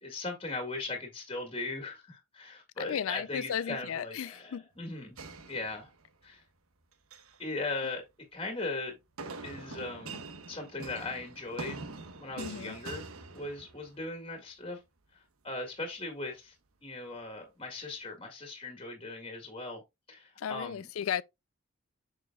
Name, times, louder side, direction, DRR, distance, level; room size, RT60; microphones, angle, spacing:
voice 1, 0.0-5.1 5.5-5.9 6.2-6.4 7.4-8.1 8.3-8.9 9.4-11.9 12.2-13.1 13.3-14.8 15.1-16.5 16.8-19.8 20.1-20.9, left 2 dB, 25° left, 1.9 m, -39 dB
voice 2, 2.8-4.6 12.4-12.8 20.4-21.2, left 8 dB, 80° left, 0.4 m, -35 dB
sound 1, 5.2-6.2 6.9-7.4 9.2-14.0, right 3 dB, 85° right, 1.1 m, -44 dB
6.7 x 6.6 x 2.3 m
head